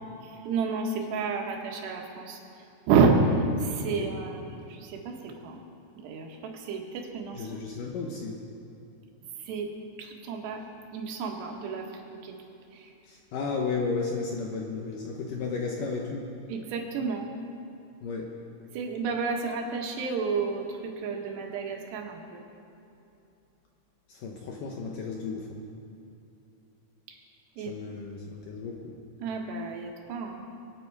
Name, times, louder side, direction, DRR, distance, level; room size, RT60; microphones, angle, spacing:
voice 1, 0.2-5.6 6.0-7.6 9.4-9.7 10.0-10.6 10.9-12.4 12.7-12.9 16.5-17.3 18.7-22.4 27.1-27.2 27.6-27.7 29.2-30.4, right 4 dB, 80° right, 2 dB, 3.4 m, -30 dB
voice 2, 7.3-8.4 13.0-16.3 18.0-18.3 24.1-25.6 27.7-29.0, left 4 dB, 70° left, 0 dB, 2.1 m, -34 dB
24.5 x 9.1 x 4.7 m, 2.8 s
omnidirectional pair, 4.9 m